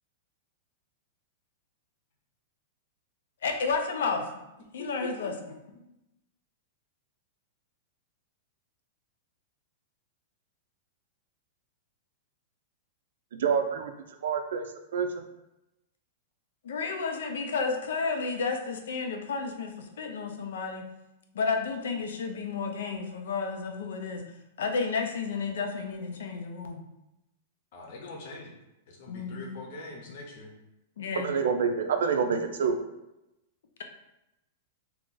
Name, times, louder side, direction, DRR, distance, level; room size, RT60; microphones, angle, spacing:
voice 1, 3.4-4.3 4.7-5.3 16.6-20.9 21.3-24.2 24.6-26.8 29.1-29.5 31.0-31.3, left 4 dB, 85° left, 5 dB, 0.5 m, -31 dB
voice 2, 4.8-5.3 27.7-28.5 28.9-30.5, left 3 dB, 45° left, 1 dB, 0.8 m, -43 dB
voice 3, 13.4-13.9 14.2-14.6 14.9-15.2 31.2-32.8, right 6 dB, 70° right, 6 dB, 0.4 m, -27 dB
2.9 x 2.5 x 3.8 m, 0.91 s
supercardioid pair, 175°, 0 cm